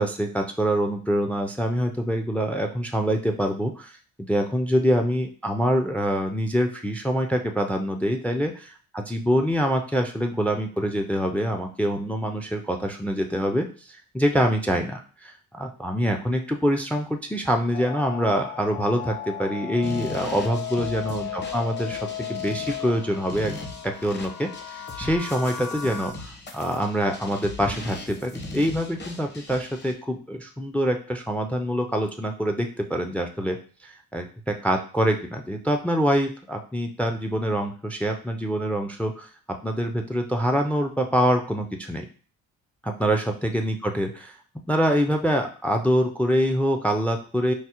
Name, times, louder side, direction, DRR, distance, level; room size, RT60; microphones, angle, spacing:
voice 1, 0.0-4.0 4.3-22.0 22.3-23.6 23.8-33.6 33.8-39.3 39.6-42.1 42.8-44.3 44.7-47.5, equal, 5° left, 5 dB, 0.3 m, -25 dB
sound 1, 17.7-26.1, left 10 dB, 85° left, 0.7 m, -35 dB
sound 2, 19.8-29.9, left 2 dB, 35° left, 0.8 m, -39 dB
4.6 x 2.0 x 2.8 m, 0.39 s
cardioid pair, 90°, 30 cm